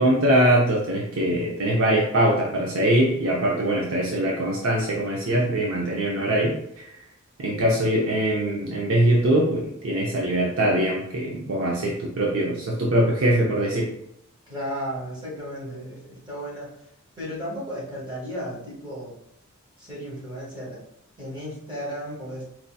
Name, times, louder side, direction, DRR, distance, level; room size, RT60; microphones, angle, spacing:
voice 1, 0.0-6.9 7.4-13.9, right 1 dB, 65° right, -3 dB, 0.6 m, -22 dB
voice 2, 14.5-16.7 17.2-19.1 19.8-20.8 21.2-22.4, equal, 20° right, -5 dB, 1.2 m, -34 dB
4.5 x 2.7 x 2.2 m, 0.76 s
head